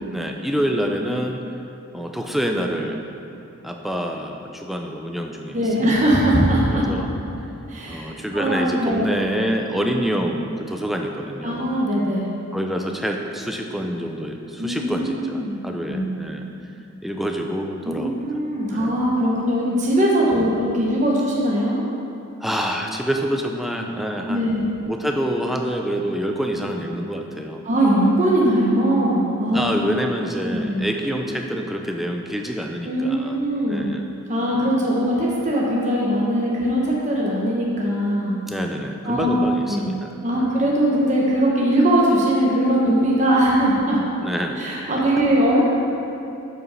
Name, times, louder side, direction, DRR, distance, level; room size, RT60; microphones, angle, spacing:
voice 1, 0.1-1.4 1.9-3.0 3.6-5.9 6.7-7.1 7.9-11.7 12.5-16.5 17.0-18.2 18.7-18.9 20.3-20.5 22.4-27.6 29.5-33.4 33.7-34.1 34.5-34.7 38.4-40.5 44.2-44.6, equal, ahead, 2 dB, 0.4 m, -27 dB
voice 2, 5.5-6.8 7.7-9.1 11.4-12.3 14.6-15.5 15.9-16.1 17.9-21.8 24.3-24.7 27.6-29.7 30.7-30.8 32.8-33.9 34.3-38.3 39.0-39.9 40.2-44.0 44.6-45.6, right 1 dB, 35° right, -5 dB, 1.0 m, -20 dB
8.0 x 4.9 x 5.6 m, 2.9 s
head